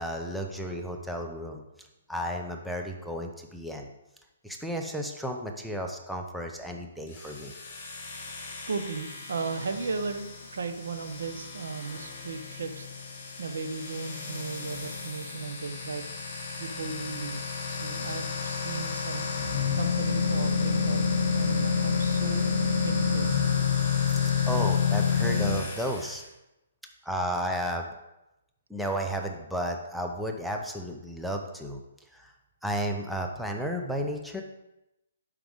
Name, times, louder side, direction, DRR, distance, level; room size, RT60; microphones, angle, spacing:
voice 1, 0.0-1.6 2.1-3.9 4.4-7.5 24.2-26.2 27.0-27.9 28.7-31.8 32.1-32.3 32.6-34.4, equal, ahead, 1 dB, 0.5 m, -33 dB
sound 1, 7.1-26.2, left 6 dB, 30° left, 2.7 m, -29 dB
voice 2, 8.2-12.9 13.4-16.0 16.6-19.3 19.7-22.5 22.8-23.5, right 4 dB, 85° right, 8 dB, 0.9 m, -36 dB
11.5 x 4.9 x 3.6 m, 0.93 s
hypercardioid pair, 170°, 0 cm